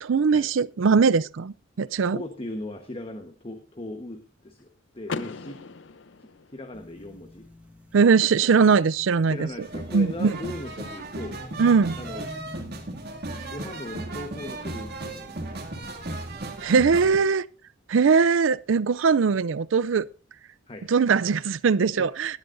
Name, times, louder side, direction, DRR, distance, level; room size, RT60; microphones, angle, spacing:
voice 1, 0.0-2.2 7.9-9.5 9.9-10.4 11.6-12.0 16.6-17.4 17.9-20.1 20.9-22.4, right 5 dB, 90° right, 0.5 m, -21 dB
voice 2, 2.1-4.7 4.9-5.6 6.2-7.5 9.3-11.4 12.0-12.3 13.5-15.6 20.7-20.9 22.0-22.3, left 1 dB, 30° left, 1.2 m, -38 dB
Car / Door, 5.1-7.0, left 4 dB, 70° left, 0.7 m, -37 dB
sound 1, 6.7-16.3, equal, 10° right, 1.4 m, -48 dB
sound 2, 9.6-17.2, right 2 dB, 55° right, 2.4 m, -36 dB
18.0 x 11.5 x 2.6 m
head